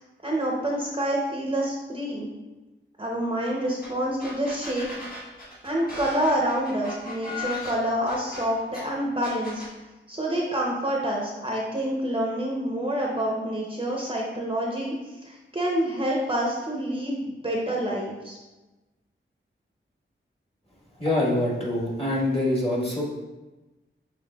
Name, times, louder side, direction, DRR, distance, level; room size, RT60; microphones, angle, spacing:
voice 1, 0.2-2.3 3.0-4.9 5.6-9.6 10.1-14.9 15.2-18.4, right 1 dB, 25° right, -2 dB, 0.7 m, -27 dB
sound 1, 3.8-3.9 4.2-8.8 9.2-9.7, left 3 dB, 45° left, 1.4 m, -37 dB
voice 2, 21.0-23.0, left 1 dB, 25° left, -4 dB, 1.5 m, -25 dB
6.7 x 3.1 x 2.3 m, 1.1 s
wide cardioid pair, 75°, 21 cm